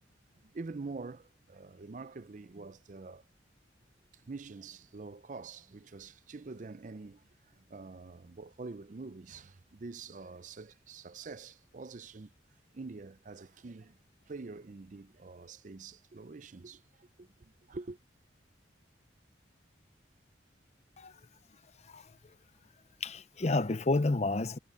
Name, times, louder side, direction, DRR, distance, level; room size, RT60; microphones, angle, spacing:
voice 1, 0.4-3.2 4.1-12.3 12.7-14.0 14.3-18.0, right 3 dB, 45° right, 0.5 m, -46 dB
voice 2, 23.0-24.6, left 2 dB, 35° left, 0.6 m, -30 dB
head